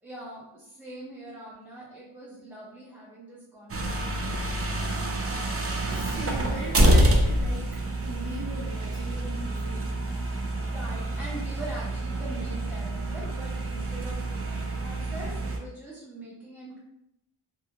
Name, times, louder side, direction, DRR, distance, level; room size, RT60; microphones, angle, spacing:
voice 1, 0.0-4.8 10.6-16.8, right 1 dB, 5° right, -9 dB, 0.7 m, -43 dB
sound 1, 3.7-15.6, right 1 dB, 30° right, 0.4 m, -27 dB
voice 2, 5.9-9.9, right 1 dB, 85° right, -6 dB, 0.9 m, -39 dB
2.4 x 2.4 x 2.8 m, 0.83 s
wide cardioid pair, 90°, 50 cm